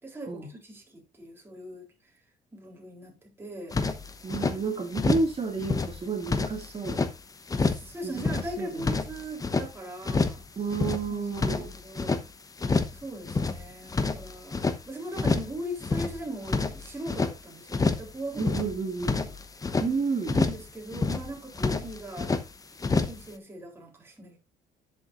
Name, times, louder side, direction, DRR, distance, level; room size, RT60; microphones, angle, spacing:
voice 1, 0.0-1.9 2.5-3.8 7.5-10.4 11.1-12.3 12.9-14.6 14.9-18.5 19.0-19.3 20.3-22.3 22.9-24.4, right 1 dB, 15° right, 3.7 m, -39 dB
sound 1, 3.7-4.6 4.9-5.3 5.6-7.1 7.5-7.9 8.1-9.7 10.0-10.4 10.7-12.2 12.6-13.0 13.2-14.8 15.1-15.5 15.8-17.3 17.7-18.1 18.3-19.9 20.2-20.6 20.9-21.3 21.5-22.4 22.8-23.2, left 4 dB, 20° left, 0.9 m, -28 dB
voice 2, 4.2-7.0 8.0-8.9 10.6-11.7 18.4-19.2 19.8-20.4, right 4 dB, 35° right, 2.4 m, -31 dB
10.0 x 7.0 x 2.6 m
cardioid pair, 110°, 17 cm